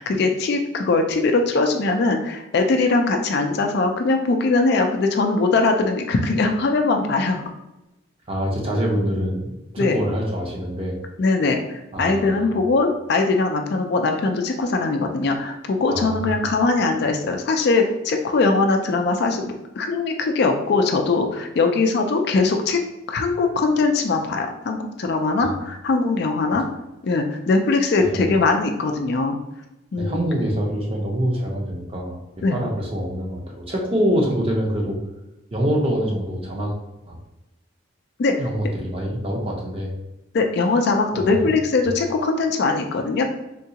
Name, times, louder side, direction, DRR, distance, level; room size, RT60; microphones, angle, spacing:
voice 1, 0.0-7.4 9.8-10.0 11.2-22.8 23.1-26.6 27.0-29.4 29.9-30.2 32.4-32.6 38.2-38.3 40.3-43.2, left 3 dB, 50° left, 4 dB, 0.3 m, -21 dB
voice 2, 8.3-11.0 11.9-12.6 15.9-16.5 25.4-25.6 28.1-28.3 30.0-32.2 32.5-35.0 35.5-36.8 37.1-37.2 38.4-39.9 41.3-41.5, equal, 25° right, -1 dB, 0.6 m, -25 dB
3.6 x 2.3 x 2.8 m, 0.95 s
head